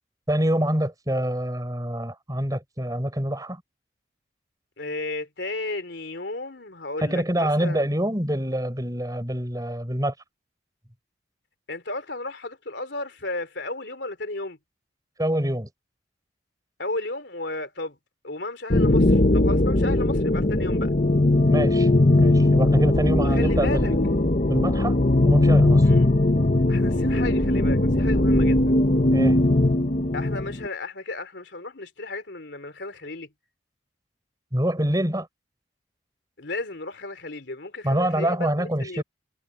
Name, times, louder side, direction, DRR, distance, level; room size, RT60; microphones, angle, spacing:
voice 1, 0.3-3.6 7.0-10.1 15.2-15.7 21.5-21.9 22.2-24.0 24.5-25.0 25.2-25.9 29.1-29.4 34.5-35.3 37.8-39.0, right 1 dB, 20° right, 5.0 m, -25 dB
voice 2, 4.8-7.8 11.7-14.6 16.8-18.0 18.2-20.9 23.2-23.9 25.8-26.1 26.7-28.8 30.1-33.3 36.4-39.0, left 2 dB, 65° left, 3.5 m, -34 dB
sound 1, 18.7-30.7, left 1 dB, 45° left, 1.2 m, -19 dB
head